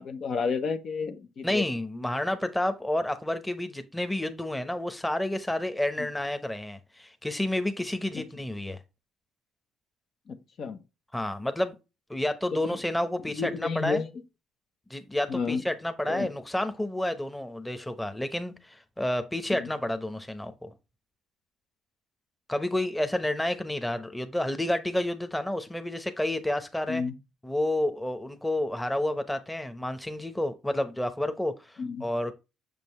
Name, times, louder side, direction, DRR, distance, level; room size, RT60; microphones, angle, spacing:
voice 1, 0.0-1.6 6.0-6.1 10.3-10.8 12.5-12.8 13.4-14.1 15.3-15.6 16.1-16.3 19.5-19.7 26.9-27.1 31.8-32.0, left 5 dB, 55° left, 1.0 m, -31 dB
voice 2, 1.4-8.8 11.1-11.7 12.1-14.0 14.9-20.7 22.5-27.0 27.4-32.3, left 1 dB, 10° left, 1.0 m, -30 dB
6.6 x 5.3 x 3.1 m
supercardioid pair, 70°, 0 cm